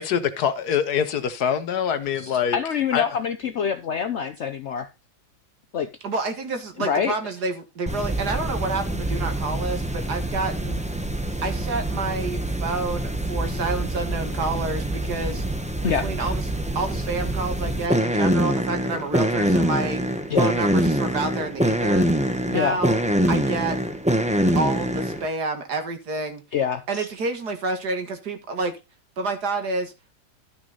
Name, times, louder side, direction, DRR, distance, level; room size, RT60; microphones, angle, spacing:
voice 1, 0.0-2.6 2.9-3.1, left 8 dB, 65° left, 1.2 m, -24 dB
voice 2, 2.2-4.9 5.7-5.9 6.8-7.1 14.3-14.4 15.8-16.3 16.9-17.0 20.3-20.5 22.5-22.8 26.5-27.1, left 7 dB, 90° left, 0.6 m, -26 dB
voice 3, 6.0-10.8 11.4-15.4 15.9-20.0 20.4-22.1 22.5-23.0 23.3-23.8 24.6-26.4 26.9-28.7 29.2-29.9, right 3 dB, 60° right, 2.1 m, -29 dB
sound 1, 7.9-25.3, right 1 dB, 5° right, 0.5 m, -25 dB
12.0 x 6.2 x 4.0 m
omnidirectional pair, 2.1 m